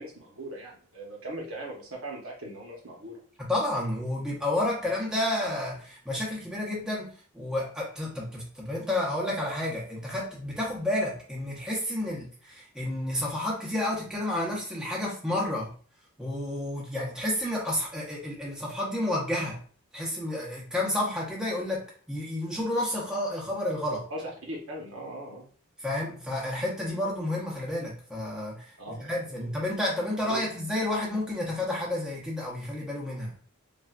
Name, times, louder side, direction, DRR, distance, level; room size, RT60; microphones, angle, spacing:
voice 1, 0.0-3.2 24.1-25.5 28.8-29.4 30.3-30.4, right 1 dB, 65° right, -1 dB, 0.9 m, -39 dB
voice 2, 3.5-7.1 7.3-15.7 16.2-19.6 19.9-24.0 25.8-33.3, left 1 dB, 5° right, -5 dB, 0.7 m, -30 dB
3.3 x 2.4 x 2.4 m, 0.42 s
head